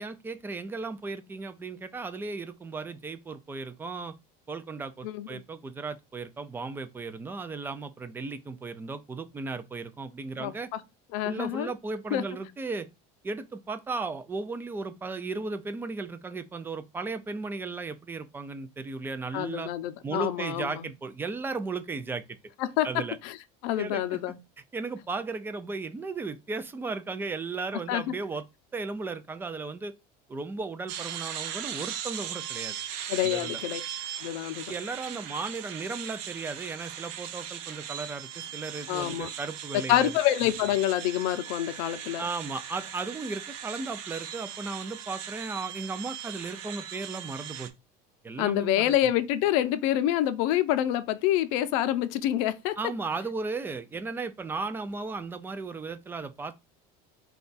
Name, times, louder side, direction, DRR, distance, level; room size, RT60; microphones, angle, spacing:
voice 1, 0.0-4.2 4.5-10.7 11.2-12.9 13.2-19.7 20.0-22.4 22.8-23.2 23.8-24.2 24.7-28.4 28.7-29.9 30.3-32.8 33.2-33.6 34.7-40.1 42.2-47.7 48.2-49.1 52.8-56.5, right 3 dB, 10° right, 0.3 m, -35 dB
voice 2, 5.0-5.4 10.4-10.8 11.1-11.7 12.1-12.2 19.3-20.9 22.6-22.9 23.2-23.4 23.6-24.4 27.9-28.1 33.1-33.8 34.2-34.7 38.9-39.3 39.9-42.2 48.4-52.8, left 12 dB, 75° left, 0.5 m, -27 dB
sound 1, 30.9-47.7, right 9 dB, 70° right, 0.7 m, -39 dB
4.3 x 2.3 x 3.9 m
cardioid pair, 155°, 18 cm